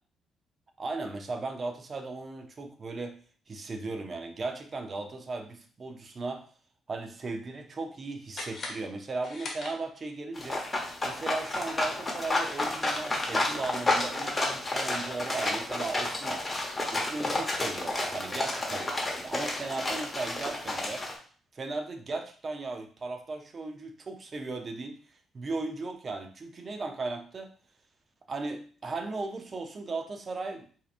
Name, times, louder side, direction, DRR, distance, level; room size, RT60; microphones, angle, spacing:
voice 1, 0.8-3.2 3.5-6.4 6.9-10.6 11.0-16.5 16.9-21.0 21.5-25.0 25.3-27.5 28.3-30.8, right 3 dB, 40° right, 5 dB, 0.6 m, -37 dB
sound 1, 8.3-10.2, left 2 dB, 45° left, 1.1 m, -41 dB
sound 2, 10.4-21.2, left 2 dB, 20° left, 1.0 m, -31 dB
4.6 x 2.8 x 2.5 m, 0.42 s
cardioid pair, 90°, 0 cm